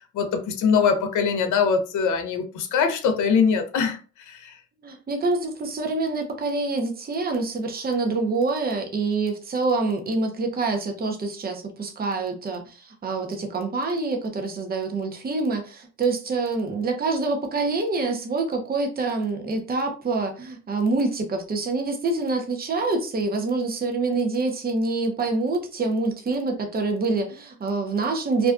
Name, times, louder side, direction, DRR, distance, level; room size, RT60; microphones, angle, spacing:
voice 1, 0.1-4.6, left 6 dB, 75° left, 0.6 m, -22 dB
voice 2, 4.8-28.5, right 3 dB, 30° right, 0.6 m, -26 dB
2.4 x 2.2 x 2.4 m
cardioid pair, 90°, 30 cm